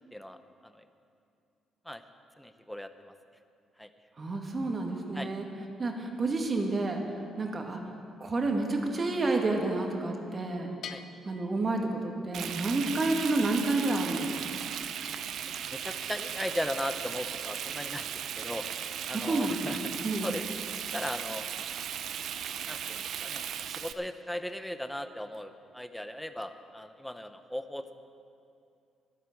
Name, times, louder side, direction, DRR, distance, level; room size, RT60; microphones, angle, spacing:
voice 1, 0.1-0.8 1.9-2.0 2.4-3.1 3.8-3.9 5.1-5.3 10.9-11.0 15.7-18.7 19.1-19.8 20.2-20.4 20.9-21.5 22.7-27.9, left 1 dB, 5° left, 9 dB, 0.8 m, -38 dB
voice 2, 4.2-5.4 5.8-7.0 7.4-7.8 8.2-10.7 11.2-14.6 19.1-20.3, right 2 dB, 35° right, 2 dB, 2.0 m, -30 dB
Bell, 10.8-12.5, left 8 dB, 65° left, 0.7 m, -47 dB
Frying (food), 12.3-23.9, right 9 dB, 70° right, 0.6 m, -37 dB
11.5 x 11.0 x 7.9 m, 2.5 s
cardioid pair, 90°, 0 cm